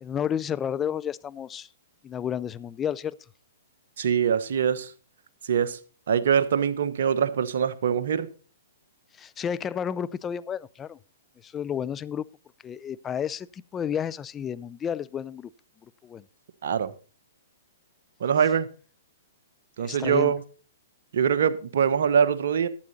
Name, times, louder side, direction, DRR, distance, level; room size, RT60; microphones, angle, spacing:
voice 1, 0.0-1.7 2.0-3.2 9.2-11.0 11.4-12.2 12.6-15.5 16.0-16.2 19.8-20.3, left 8 dB, 20° left, 0.4 m, -31 dB
voice 2, 4.0-4.9 5.4-5.8 6.1-8.3 16.6-16.9 18.2-18.7 19.8-20.4 21.1-22.7, right 7 dB, 65° right, 1.1 m, -23 dB
11.5 x 8.9 x 4.1 m
hypercardioid pair, 130°, 0 cm